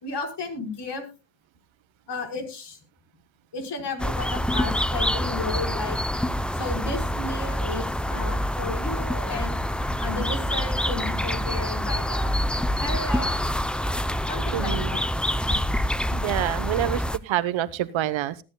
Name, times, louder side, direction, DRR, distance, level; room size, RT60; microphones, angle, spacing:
voice 1, 0.0-1.1 2.1-2.8 3.5-6.0 6.5-9.6 10.0-13.5 14.3-15.1, left 3 dB, 55° left, 3 dB, 5.1 m, -33 dB
sound 1, 4.0-17.2, equal, ahead, 0.5 m, -26 dB
voice 2, 14.5-14.9 16.2-18.4, right 12 dB, 65° right, 15 dB, 1.1 m, -27 dB
21.0 x 11.0 x 2.3 m, 0.30 s
cardioid pair, 90°, 49 cm